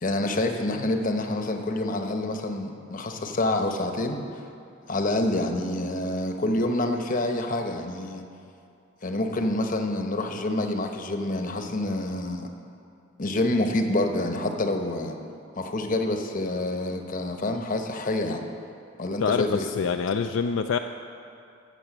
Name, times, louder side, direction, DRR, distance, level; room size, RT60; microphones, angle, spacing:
voice 1, 0.0-4.2 4.9-8.2 9.0-12.5 13.2-15.1 15.6-18.4 19.0-19.7, left 1 dB, 40° left, 5 dB, 0.9 m, -27 dB
voice 2, 19.2-20.8, left 6 dB, 65° left, 6 dB, 0.4 m, -25 dB
15.0 x 7.0 x 6.1 m, 2.5 s
head